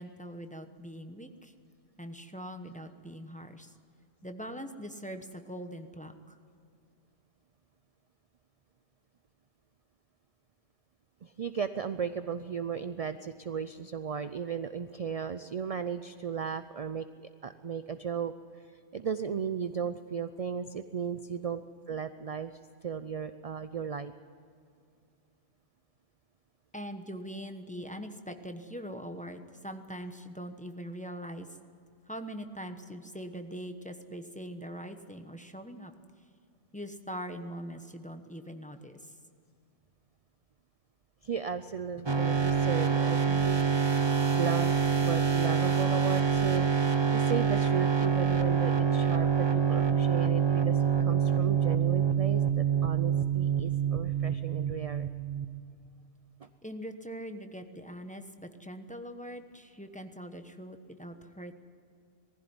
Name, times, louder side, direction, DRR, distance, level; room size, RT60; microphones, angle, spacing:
voice 1, 0.0-1.5 2.0-3.7 4.2-6.4 26.7-31.5 32.1-35.9 36.7-39.1 56.6-61.5, equal, 5° left, 6 dB, 0.9 m, -42 dB
voice 2, 11.2-18.3 18.9-24.1 41.2-43.6 44.3-49.3 49.5-55.1 56.4-56.5, right 7 dB, 50° right, 11 dB, 0.4 m, -36 dB
sound 1, 42.1-55.6, right 7 dB, 25° right, 0.9 m, -26 dB
19.5 x 15.0 x 9.7 m, 2.3 s
omnidirectional pair, 1.3 m